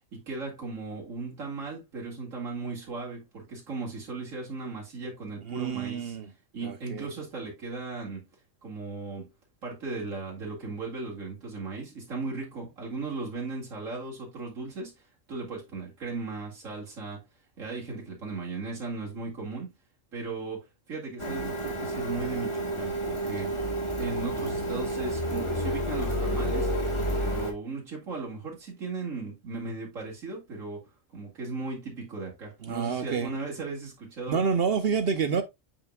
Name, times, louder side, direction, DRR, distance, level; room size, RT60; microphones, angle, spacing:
voice 1, 0.1-6.2 6.5-8.3 8.6-9.3 9.6-17.2 17.6-19.7 20.1-26.7 27.2-30.8 31.1-34.4 35.3-35.4, right 3 dB, 85° right, 2.5 m, -37 dB
voice 2, 5.5-6.3 6.6-7.1 32.6-33.3 34.3-35.4, right 6 dB, 55° right, 0.8 m, -28 dB
Printer, 21.2-27.5, right 1 dB, 25° left, 1.1 m, -30 dB
8.8 x 4.7 x 2.3 m
omnidirectional pair, 1.3 m